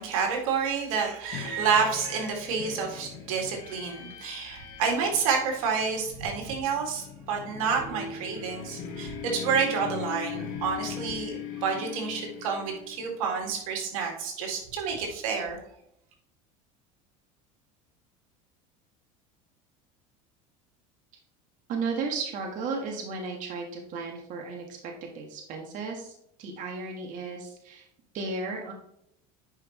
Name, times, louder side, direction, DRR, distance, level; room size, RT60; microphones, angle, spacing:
voice 1, 0.0-15.6, right 6 dB, 90° right, 2 dB, 2.3 m, -29 dB
sound 1, 1.3-13.4, left 7 dB, 55° left, 1.4 m, -40 dB
voice 2, 21.7-26.1 26.4-27.9 28.1-28.7, right 4 dB, 50° right, 1 dB, 1.6 m, -34 dB
9.9 x 5.5 x 3.1 m, 0.75 s
supercardioid pair, 125°, 17 cm